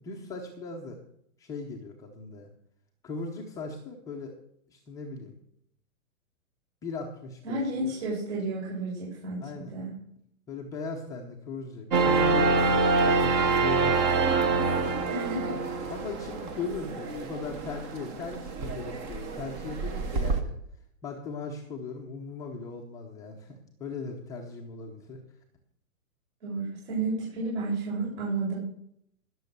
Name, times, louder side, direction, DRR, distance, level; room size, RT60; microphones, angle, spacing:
voice 1, 0.0-1.0 1.4-2.5 3.0-4.3 4.7-5.3 6.8-7.8 9.4-9.8 10.5-14.2 15.9-20.5 21.0-25.2, left 4 dB, 10° left, 0 dB, 0.7 m, -38 dB
voice 2, 7.4-9.9 15.1-15.7 17.0-17.1 26.4-28.6, right 2 dB, 50° right, -5 dB, 7.3 m, -32 dB
sound 1, 11.9-20.4, right 4 dB, 20° right, 0.9 m, -26 dB
19.0 x 7.0 x 6.8 m, 0.72 s
hypercardioid pair, 160°, 42 cm